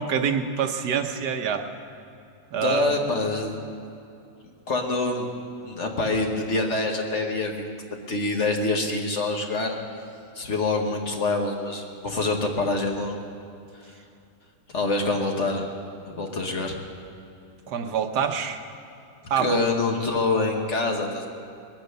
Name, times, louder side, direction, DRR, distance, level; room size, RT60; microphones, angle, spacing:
voice 1, 0.0-1.7 2.5-2.9 17.7-18.6 19.3-19.6, right 7 dB, 75° right, 6 dB, 1.4 m, -26 dB
voice 2, 2.6-3.5 4.7-5.3 5.6-9.8 10.3-13.2 14.7-15.7 16.1-16.8 19.4-21.3, left 3 dB, 45° left, 2 dB, 1.4 m, -26 dB
20.0 x 8.8 x 6.6 m, 2.7 s
omnidirectional pair, 1.8 m